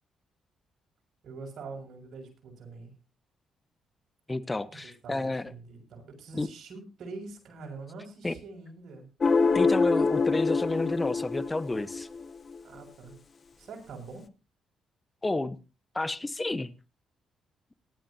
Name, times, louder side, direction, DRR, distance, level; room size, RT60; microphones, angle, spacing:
voice 1, 1.2-2.9 4.7-9.1 12.6-13.2 13.6-14.3, right 3 dB, 65° right, 3 dB, 6.5 m, -44 dB
voice 2, 4.3-5.5 6.3-6.5 8.2-8.3 9.5-12.1 15.2-15.6 15.9-16.7, left 2 dB, 20° left, 15 dB, 1.2 m, -30 dB
sound 1, 9.2-12.6, left 4 dB, 45° left, 0.9 m, -25 dB
18.5 x 12.5 x 2.8 m, 0.30 s
supercardioid pair, 65°, 0 cm